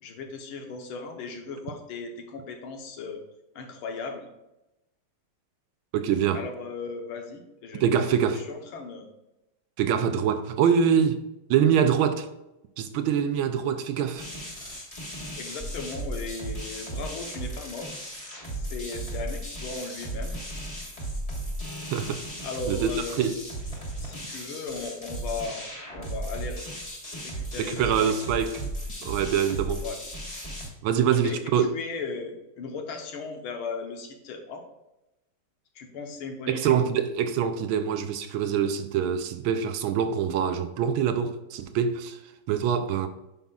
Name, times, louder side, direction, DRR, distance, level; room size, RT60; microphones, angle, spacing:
voice 1, 0.0-3.2 3.5-4.3 6.3-8.1 8.3-9.1 15.4-18.0 18.5-20.4 22.4-23.2 24.0-26.6 27.1-28.1 29.8-30.0 31.1-34.6 35.7-36.7, left 4 dB, 75° left, 1.8 m, -37 dB
voice 2, 5.9-6.5 7.7-8.5 9.8-11.2 11.5-12.3 12.8-14.3 21.9-22.2 22.7-23.4 27.6-28.7 29.0-29.8 30.8-31.7 36.5-42.2 42.5-43.1, right 8 dB, 75° right, 1.3 m, -24 dB
sound 1, 14.2-30.7, right 1 dB, 20° left, 1.2 m, -36 dB
9.1 x 5.6 x 2.3 m
omnidirectional pair, 2.4 m